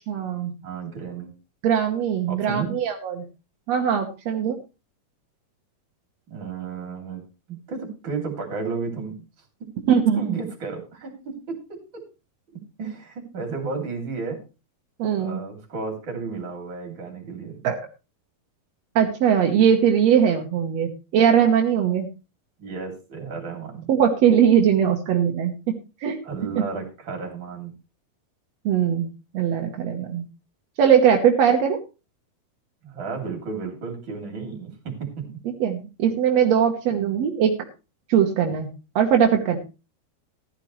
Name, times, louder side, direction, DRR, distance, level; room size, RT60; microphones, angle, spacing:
voice 1, 0.1-0.5 1.6-3.3 3.7-4.5 9.9-10.2 15.0-15.4 17.6-17.8 18.9-22.1 23.9-25.7 26.0-26.2 26.5-26.6 28.6-29.1 29.3-30.2 30.8-31.8 35.6-37.5 38.1-38.7 38.9-39.6, right 8 dB, 70° right, 2 dB, 1.7 m, -20 dB
voice 2, 0.6-1.3 2.3-2.7 6.3-9.3 9.6-12.1 12.5-14.4 15.2-17.6 22.6-23.9 26.2-27.7 32.8-35.3 36.9-37.1 38.4-38.5, right 5 dB, 30° right, 3 dB, 3.2 m, -33 dB
15.0 x 11.5 x 3.1 m, 0.30 s
omnidirectional pair, 4.6 m